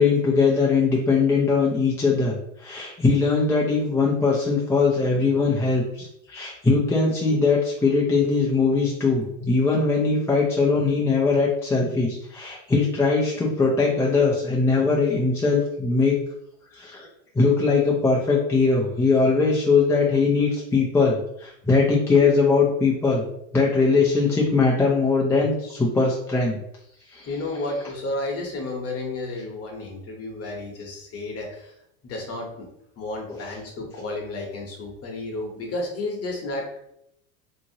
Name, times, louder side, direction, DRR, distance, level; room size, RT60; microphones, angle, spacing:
voice 1, 0.0-16.2 16.7-17.1 17.3-23.2 23.5-26.6 27.1-27.3 33.3-33.4, left 4 dB, 5° left, -5 dB, 0.4 m, -21 dB
voice 2, 27.3-31.7 32.0-32.7 33.0-36.7, left 2 dB, 35° left, 0 dB, 1.0 m, -32 dB
2.8 x 2.8 x 2.7 m, 0.76 s
supercardioid pair, 110°, 41 cm